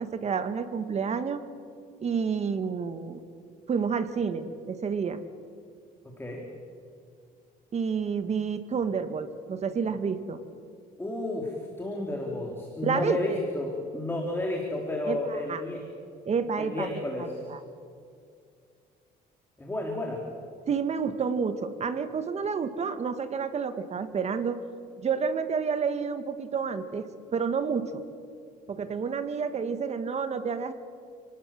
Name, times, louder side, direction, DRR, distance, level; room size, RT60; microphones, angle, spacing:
voice 1, 0.0-1.4 2.0-3.2 3.7-5.2 7.7-10.4 12.8-13.4 15.1-15.6 16.3-16.9 17.2-17.6 20.7-24.6 25.0-28.0 28.7-30.7, right 6 dB, 40° right, 10 dB, 1.8 m, -29 dB
voice 2, 6.2-6.5 11.0-15.8 16.6-17.4 19.6-20.2, left 1 dB, 15° left, 0 dB, 3.9 m, -32 dB
30.0 x 19.0 x 7.6 m, 2.3 s
cardioid pair, 110°, 17 cm